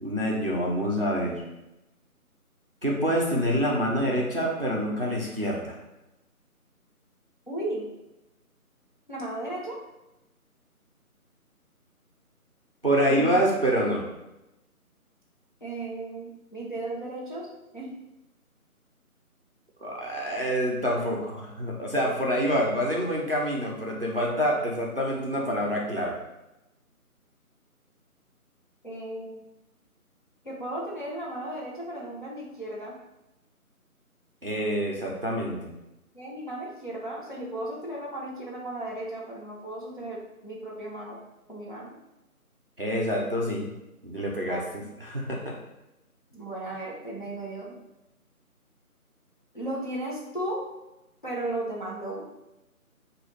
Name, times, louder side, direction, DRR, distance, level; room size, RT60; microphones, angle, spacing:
voice 1, 0.0-1.4 2.8-5.8 12.8-14.1 19.8-26.1 34.4-35.7 42.8-43.7 44.0-44.6 45.0-45.5, equal, 40° right, -3 dB, 0.5 m, -26 dB
voice 2, 7.5-7.9 9.1-9.8 12.9-13.4 15.6-17.5 17.7-17.9 28.8-29.5 30.4-32.9 36.1-41.2 41.5-41.9 44.5-44.7 46.3-47.8 49.5-50.6 51.2-52.2, right 1 dB, 35° left, -6 dB, 0.6 m, -35 dB
3.8 x 2.3 x 3.2 m, 0.95 s
figure-of-eight pair, 165°, 44 cm